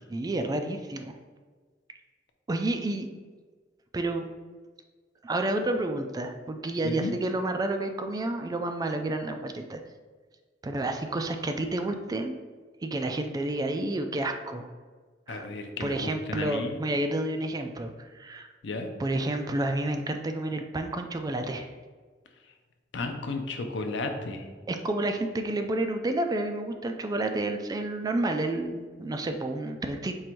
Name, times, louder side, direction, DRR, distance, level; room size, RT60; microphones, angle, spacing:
voice 1, 0.1-1.1 2.5-3.1 3.9-4.3 5.2-9.8 10.6-12.3 12.8-14.7 15.3-15.5 15.8-18.5 19.0-21.7 24.7-30.1, right 2 dB, 20° right, 6 dB, 0.3 m, -30 dB
voice 2, 15.3-16.9 18.6-18.9 22.9-24.4, left 3 dB, 75° left, 5 dB, 0.6 m, -33 dB
4.7 x 2.6 x 4.4 m, 1.4 s
head